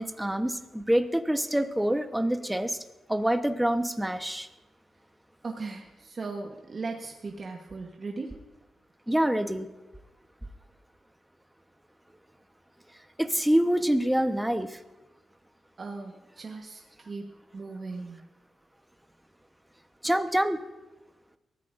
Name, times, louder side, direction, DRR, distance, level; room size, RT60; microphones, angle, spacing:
voice 1, 0.0-2.8 3.1-4.5 9.1-9.7 13.2-14.8 20.0-20.6, right 1 dB, 5° right, 8 dB, 1.1 m, -26 dB
voice 2, 5.4-8.4 15.8-18.3, right 3 dB, 45° right, 1 dB, 1.2 m, -38 dB
23.0 x 14.5 x 2.6 m, 1.1 s
cardioid pair, 65°, 0 cm